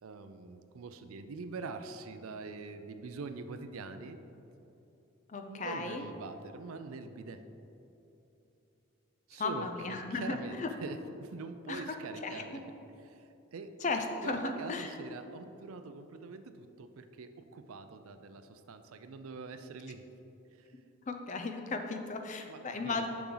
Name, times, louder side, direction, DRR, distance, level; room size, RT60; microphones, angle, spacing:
voice 1, 0.0-4.2 5.5-7.4 9.3-12.6 13.0-13.2 13.5-13.9 14.2-20.0 20.6-20.7 22.5-23.1, right 4 dB, 80° right, 9 dB, 0.4 m, -44 dB
voice 2, 5.3-6.0 9.4-10.7 11.7-11.8 12.2-12.6 13.8-15.0 21.1-23.1, left 3 dB, 35° left, 5 dB, 0.5 m, -35 dB
6.9 x 6.0 x 3.9 m, 2.9 s
head